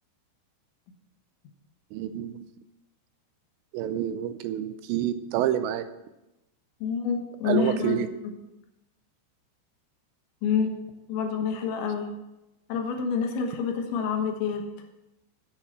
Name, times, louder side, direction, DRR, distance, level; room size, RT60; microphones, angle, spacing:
voice 1, 1.9-2.4 3.7-5.8 7.5-8.1, right 11 dB, 85° right, 11 dB, 2.8 m, -28 dB
voice 2, 6.8-8.0 8.2-8.3 10.4-10.8 11.1-12.1 12.7-14.6, left 6 dB, 85° left, 4 dB, 3.6 m, -27 dB
8.6 x 6.7 x 7.4 m, 0.95 s
omnidirectional pair, 5.2 m